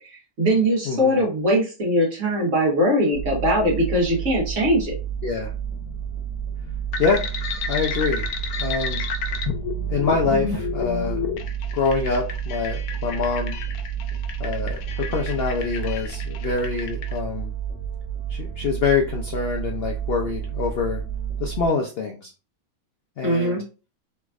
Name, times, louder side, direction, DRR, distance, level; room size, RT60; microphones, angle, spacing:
voice 1, 0.0-5.0 23.2-23.6, equal, 60° right, -2 dB, 1.6 m, -21 dB
voice 2, 0.9-1.2 5.2-5.5 7.0-7.3 7.7-8.3 8.6-9.1 9.9-11.2 11.7-13.6 14.4-17.5 18.3-21.0 21.4-22.3 23.2-23.6, left 5 dB, 70° left, 1 dB, 0.5 m, -25 dB
sound 1, 3.1-21.7, right 8 dB, 40° left, 1.2 m, -30 dB
sound 2, 6.9-17.1, left 6 dB, 85° left, 1.1 m, -31 dB
3.4 x 3.0 x 2.3 m, 0.33 s
omnidirectional pair, 1.5 m